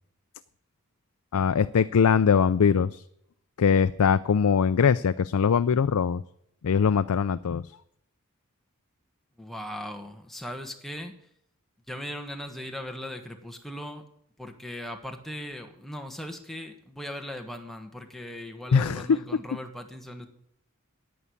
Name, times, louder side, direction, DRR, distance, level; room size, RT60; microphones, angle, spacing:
voice 1, 1.3-3.0 3.6-6.2 6.6-7.6 18.7-19.2, left 6 dB, 80° left, 12 dB, 0.4 m, -22 dB
voice 2, 9.4-11.1 11.9-14.0 14.4-20.3, equal, ahead, 3 dB, 1.3 m, -38 dB
11.0 x 9.5 x 8.5 m, 0.74 s
head